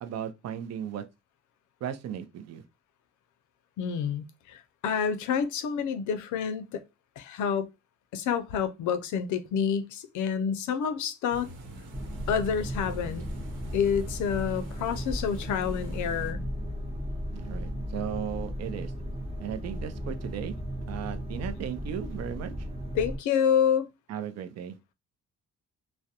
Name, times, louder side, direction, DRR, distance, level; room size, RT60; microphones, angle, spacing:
voice 1, 0.0-1.0 1.8-2.6 17.3-18.9 19.4-20.6 20.9-22.7 24.1-24.8, right 9 dB, 60° right, 0.5 m, -36 dB
voice 2, 3.8-6.8 7.2-7.7 8.1-11.5 12.3-13.2 13.7-16.4 23.0-23.9, left 7 dB, 75° left, 0.5 m, -28 dB
sound 1, 11.3-16.3, right 1 dB, 85° right, 0.9 m, -47 dB
sound 2, 11.9-23.2, equal, 20° right, 0.8 m, -35 dB
2.3 x 2.0 x 2.7 m
cardioid pair, 90°, 30 cm